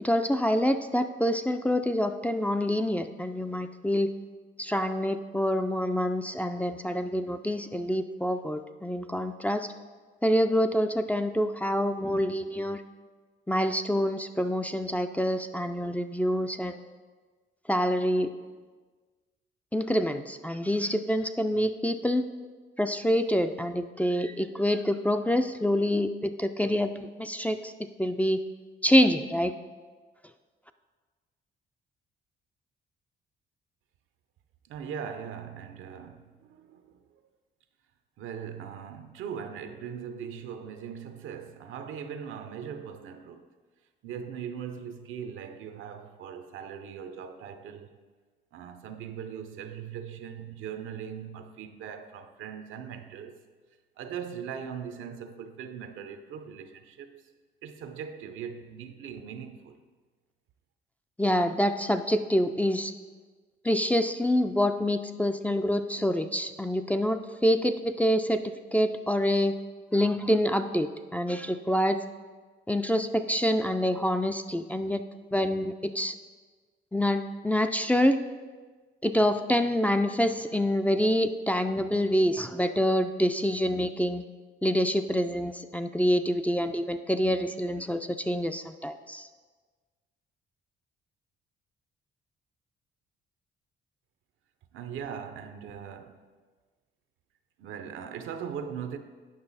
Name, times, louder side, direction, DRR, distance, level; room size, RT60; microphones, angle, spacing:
voice 1, 0.0-4.1 4.6-9.7 10.2-12.8 13.5-16.9 17.7-18.3 19.7-22.2 22.8-27.7 28.0-28.4 28.8-29.5 61.2-62.9 63.6-69.5 69.9-72.0 72.7-75.0 75.3-76.1 76.9-78.2 79.0-84.2 84.6-89.3, equal, 5° left, 0.3 m, -26 dB
voice 2, 34.7-37.2 38.2-43.5 44.0-48.0 48.5-53.4 54.0-57.2 57.6-59.8 94.7-96.2 97.6-99.0, right 7 dB, 80° right, 0.7 m, -40 dB
8.8 x 5.5 x 4.1 m
cardioid pair, 90°, 20 cm